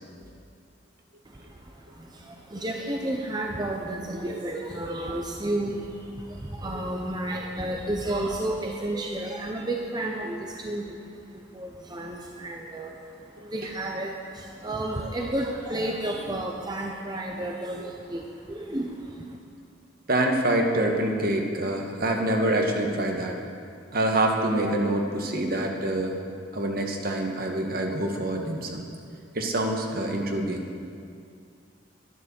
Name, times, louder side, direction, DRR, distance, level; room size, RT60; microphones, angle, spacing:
voice 1, 1.3-19.4, right 1 dB, 20° right, 0 dB, 0.8 m, -32 dB
voice 2, 20.1-23.3 23.9-26.1 26.5-28.8 29.3-30.7, right 1 dB, 50° right, 1 dB, 1.5 m, -26 dB
11.0 x 11.0 x 7.1 m, 2.4 s
head